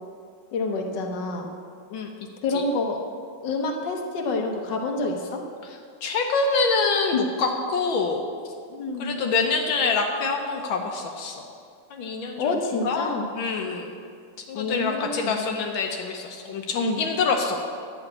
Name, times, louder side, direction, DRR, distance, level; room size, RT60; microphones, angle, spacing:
voice 1, 0.5-1.5 2.4-3.0 3.4-5.4 8.7-9.1 12.4-13.3 14.5-15.5 16.7-17.0, left 3 dB, 65° left, 2 dB, 1.7 m, -27 dB
voice 2, 6.0-8.2 9.0-11.5 11.9-12.6 12.8-13.9 14.5-17.7, left 4 dB, 85° left, 2 dB, 1.7 m, -26 dB
10.5 x 6.5 x 8.7 m, 2.2 s
omnidirectional pair, 2.1 m